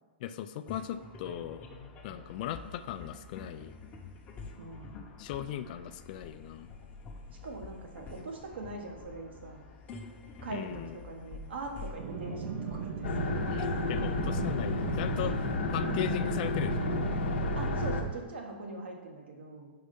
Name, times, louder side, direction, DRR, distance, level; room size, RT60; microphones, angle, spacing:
voice 1, 0.2-1.7 2.0-3.8 5.2-6.7 10.5-11.0 13.5-16.9, left 11 dB, 50° left, 11 dB, 0.4 m, -38 dB
sound 1, 0.7-16.3, left 4 dB, 25° left, 0.8 m, -48 dB
voice 2, 4.6-5.1 7.4-9.6 10.4-13.4 17.5-19.7, right 2 dB, 75° right, 1 dB, 1.3 m, -42 dB
sound 2, 12.0-17.2, right 7 dB, 45° right, 0.5 m, -37 dB
sound 3, 13.0-18.0, left 2 dB, 75° left, 0.8 m, -31 dB
4.7 x 4.1 x 5.2 m, 1.4 s
hypercardioid pair, 130°, 6 cm